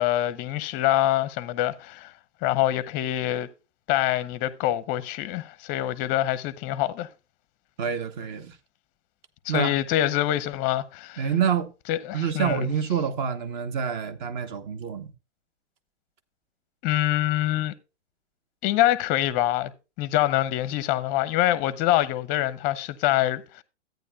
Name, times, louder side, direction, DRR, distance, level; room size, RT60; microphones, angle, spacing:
voice 1, 0.0-2.1 2.4-3.5 3.9-7.1 9.4-11.3 11.9-12.7 16.8-17.7 18.6-19.7 20.0-23.6, left 14 dB, 25° left, 0.6 m, -25 dB
voice 2, 7.8-8.6 9.5-9.7 11.2-11.7 12.1-15.1, right 7 dB, 40° right, 1.1 m, -27 dB
13.5 x 9.2 x 2.2 m
hypercardioid pair, 130°, 36 cm